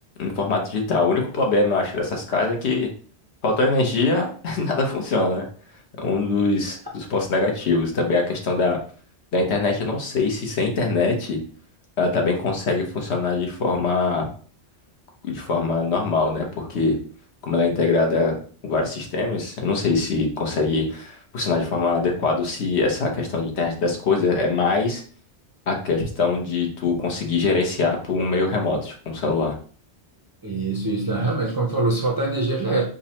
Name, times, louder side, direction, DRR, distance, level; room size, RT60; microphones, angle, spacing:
voice 1, 0.2-2.9 3.4-5.4 6.0-8.8 9.3-11.4 12.0-14.3 15.2-17.0 17.4-18.4 18.6-25.0 25.7-29.5, left 3 dB, 75° left, 2 dB, 1.1 m, -23 dB
voice 2, 30.4-32.8, right 2 dB, 30° right, -1 dB, 0.4 m, -23 dB
5.1 x 2.2 x 2.8 m, 0.43 s
omnidirectional pair, 1.1 m